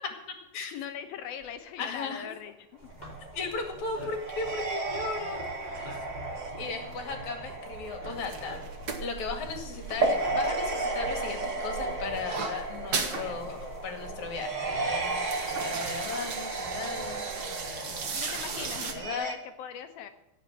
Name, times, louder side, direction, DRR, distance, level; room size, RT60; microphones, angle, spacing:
voice 1, 0.7-2.9 13.1-13.6 18.1-20.1, left 9 dB, 80° left, 8 dB, 2.9 m, -41 dB
sound 1, 1.3-1.6 2.5-2.6 2.9-19.3, right 3 dB, 45° right, 0.9 m, -34 dB
voice 2, 1.8-2.3 3.3-5.9 6.6-8.6 9.0-18.0 18.8-19.3, left 4 dB, 55° left, 5 dB, 3.3 m, -37 dB
sound 2, 2.8-19.1, right 2 dB, 10° left, 4.1 m, -45 dB
sound 3, 8.2-10.7 11.0-13.2 13.6-13.7 14.0-14.4 14.8-18.9, right 5 dB, 80° right, 0.8 m, -37 dB
17.0 x 6.8 x 9.0 m, 0.92 s
omnidirectional pair, 4.3 m